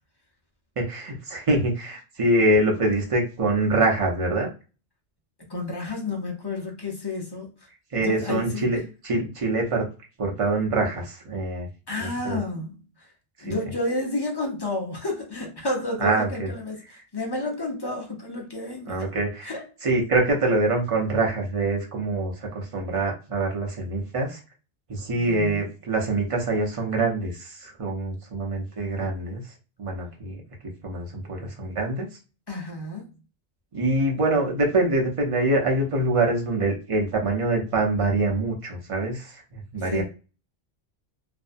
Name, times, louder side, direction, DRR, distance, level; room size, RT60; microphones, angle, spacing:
voice 1, 0.8-4.5 7.9-9.8 10.2-11.7 12.0-12.4 13.4-13.5 16.0-16.5 18.9-19.5 19.8-24.4 24.9-29.4 29.8-30.4 30.8-32.1 33.7-40.0, right 2 dB, 35° right, 0.6 m, -25 dB
voice 2, 5.5-7.7 8.0-8.7 11.9-13.1 13.4-19.0 19.4-19.6 25.2-25.7 32.5-33.1 39.8-40.0, left 2 dB, 30° left, 0.5 m, -31 dB
2.5 x 2.1 x 2.5 m
omnidirectional pair, 1.2 m